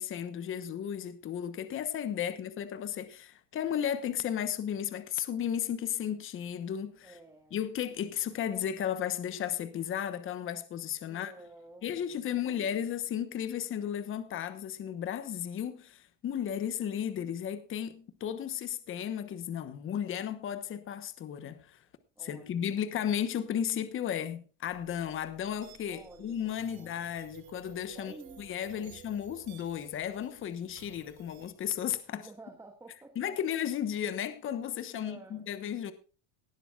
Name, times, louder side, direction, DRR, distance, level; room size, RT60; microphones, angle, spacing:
voice 1, 0.0-7.2 7.5-11.3 11.8-21.8 22.2-32.3 33.2-35.9, left 9 dB, 30° left, 1.1 m, -34 dB
voice 2, 7.0-7.5 11.1-12.8 22.2-22.7 25.9-26.4 26.7-26.9 27.9-28.4 28.7-28.9 32.1-33.3 34.9-35.4, right 2 dB, 10° right, 1.4 m, -52 dB
sound 1, 24.7-31.5, right 11 dB, 60° right, 2.5 m, -55 dB
18.0 x 12.0 x 2.4 m
cardioid pair, 150°, 39 cm